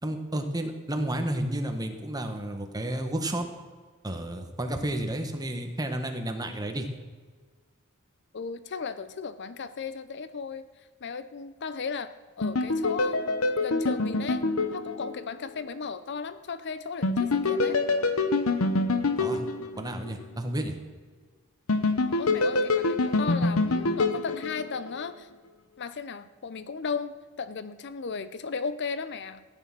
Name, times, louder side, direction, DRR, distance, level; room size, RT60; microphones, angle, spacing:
voice 1, 0.0-3.5 4.0-6.9 19.2-19.4 19.8-20.8, right 1 dB, 20° right, 5 dB, 1.4 m, -31 dB
voice 2, 8.3-10.6 11.0-14.4 14.7-17.8 22.2-25.3 25.8-29.4, left 5 dB, 55° left, 13 dB, 0.6 m, -35 dB
sound 1, 12.4-15.5 17.0-20.2 21.7-25.1, left 3 dB, 85° left, 0.9 m, -26 dB
15.0 x 9.8 x 6.1 m, 1.5 s
head